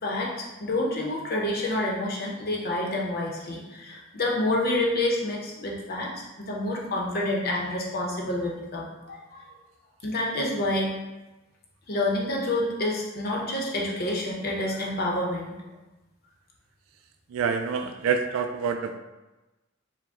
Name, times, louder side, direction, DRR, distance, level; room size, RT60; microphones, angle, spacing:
voice 1, 0.0-9.5 10.0-10.9 11.9-15.5, left 1 dB, 50° left, -2 dB, 0.8 m, -28 dB
voice 2, 17.3-19.0, right 6 dB, 80° right, 6 dB, 0.3 m, -27 dB
4.9 x 2.2 x 3.6 m, 1.1 s
head